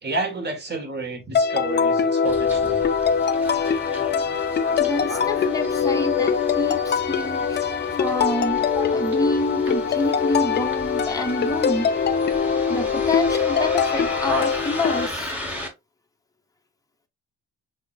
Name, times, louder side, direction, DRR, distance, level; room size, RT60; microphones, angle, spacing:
voice 1, 0.0-2.9, right 3 dB, 35° right, 1.5 m, -30 dB
sound 1, 1.3-15.1, left 6 dB, 35° left, 0.4 m, -22 dB
Bus, 2.2-15.7, equal, 5° right, 1.3 m, -36 dB
voice 2, 4.8-12.2 12.7-15.3, left 2 dB, 10° left, 0.8 m, -28 dB
6.2 x 2.1 x 2.3 m
cardioid pair, 90°, 30 cm